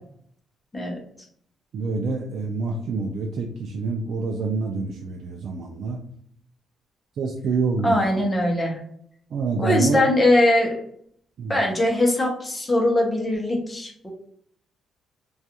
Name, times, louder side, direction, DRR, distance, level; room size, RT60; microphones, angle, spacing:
voice 1, 1.7-6.0 7.2-8.1 9.3-10.1 11.4-11.6, right 4 dB, 60° right, 1 dB, 0.3 m, -27 dB
voice 2, 7.8-8.8 9.6-10.8 11.5-14.1, left 1 dB, 15° left, -1 dB, 0.6 m, -21 dB
2.3 x 2.3 x 2.7 m, 0.64 s
cardioid pair, 135°, 0 cm